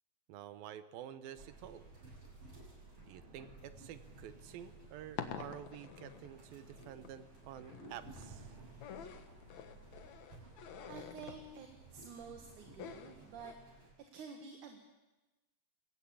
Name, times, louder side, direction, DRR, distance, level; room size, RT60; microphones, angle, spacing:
voice 1, 0.3-1.8 3.1-8.5, right 10 dB, 75° right, 12 dB, 2.7 m, -50 dB
sound 1, 1.3-13.9, right 3 dB, 40° right, 7.8 m, -56 dB
sound 2, 4.7-13.5, left 8 dB, 60° left, 2.3 m, -49 dB
voice 2, 10.3-13.8 14.1-14.9, right 5 dB, 60° right, 4 dB, 2.9 m, -51 dB
23.5 x 18.5 x 8.5 m, 1.1 s
omnidirectional pair, 4.3 m